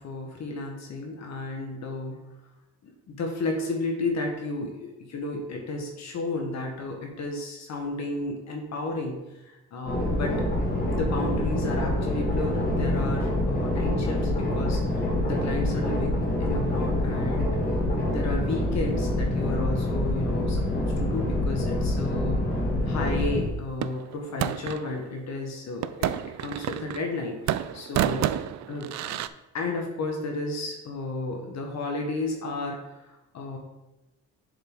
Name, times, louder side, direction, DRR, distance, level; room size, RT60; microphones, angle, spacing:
voice 1, 0.0-2.2 2.8-9.2 9.4-10.3 10.9-17.5 18.1-22.4 22.8-28.4 28.7-29.2 29.5-33.6, left 2 dB, 60° left, 1 dB, 1.4 m, -33 dB
sound 1, 9.9-23.5, left 1 dB, 30° left, 2.4 m, -26 dB
sound 2, 23.8-24.9 25.8-27.2 27.5-29.3, right 12 dB, 65° right, 0.4 m, -29 dB
7.3 x 5.4 x 3.9 m, 0.99 s
cardioid pair, 90°, 30 cm